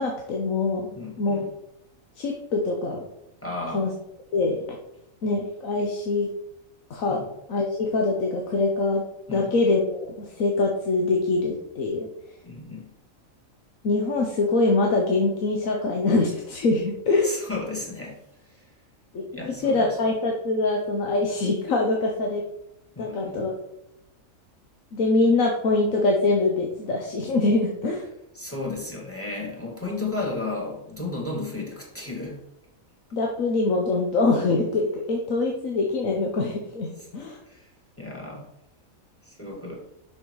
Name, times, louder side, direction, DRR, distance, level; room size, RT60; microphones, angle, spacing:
voice 1, 0.0-1.4 2.2-3.1 3.7-3.9 4.3-4.6 5.2-6.3 6.9-7.2 7.5-9.0 9.3-12.1 13.8-17.4 19.1-22.4 23.0-23.5 24.9-28.0 33.1-37.4, left 3 dB, 75° left, 0 dB, 1.4 m, -24 dB
voice 2, 1.0-1.5 3.4-3.9 7.1-7.3 9.3-9.5 12.4-12.9 17.2-18.7 19.3-20.0 23.0-23.5 28.3-32.4 37.0-37.1 37.5-37.7 38.0-38.5 39.2-39.9, left 2 dB, 10° left, -1 dB, 2.1 m, -34 dB
6.5 x 6.2 x 4.7 m, 0.83 s
omnidirectional pair, 1.4 m